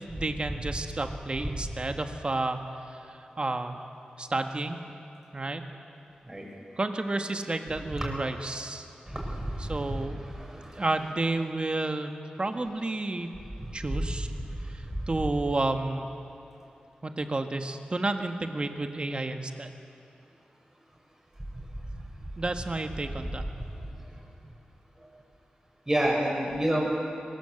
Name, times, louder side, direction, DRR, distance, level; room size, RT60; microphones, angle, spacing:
voice 1, 0.0-2.6 2.9-3.8 4.2-4.8 5.3-5.6 6.8-8.8 9.6-10.2 10.7-13.3 13.7-14.3 14.7-16.1 17.0-19.7 22.4-23.4, right 2 dB, 35° right, 6 dB, 1.7 m, -31 dB
voice 2, 9.1-10.0 25.9-26.8, right 1 dB, 20° right, -1 dB, 6.2 m, -28 dB
23.0 x 21.0 x 8.1 m, 2.7 s
wide cardioid pair, 85°, 3 cm